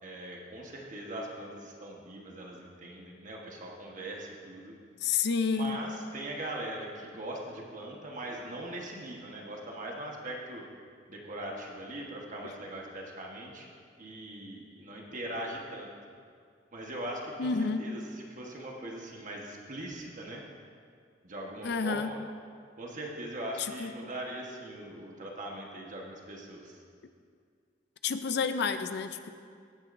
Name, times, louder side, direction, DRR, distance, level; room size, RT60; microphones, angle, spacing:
voice 1, 0.0-4.7 5.5-10.6 11.1-13.7 14.0-15.9 16.7-20.4 21.2-22.2 22.8-26.8, right 1 dB, 45° right, -1 dB, 1.2 m, -40 dB
voice 2, 5.0-5.8 17.4-17.8 21.6-22.1 23.8-23.9 28.0-29.3, left 5 dB, 65° left, 10 dB, 0.5 m, -29 dB
16.0 x 9.8 x 2.6 m, 2.2 s
head